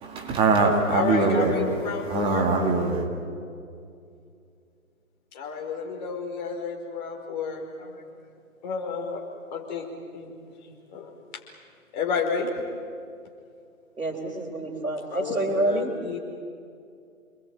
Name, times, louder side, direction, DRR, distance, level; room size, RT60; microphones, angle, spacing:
voice 1, 0.0-3.1, right 3 dB, 10° right, 2.0 m, -23 dB
voice 2, 0.9-2.5 5.3-8.0 8.6-9.2 9.5-9.9 10.1-10.3 10.9-11.1 11.9-12.5 15.1-16.2, left 5 dB, 30° left, 4.8 m, -31 dB
voice 3, 14.0-15.9, right 1 dB, 90° right, 3.9 m, -27 dB
28.5 x 21.5 x 9.2 m
figure-of-eight pair, 145°, 42 cm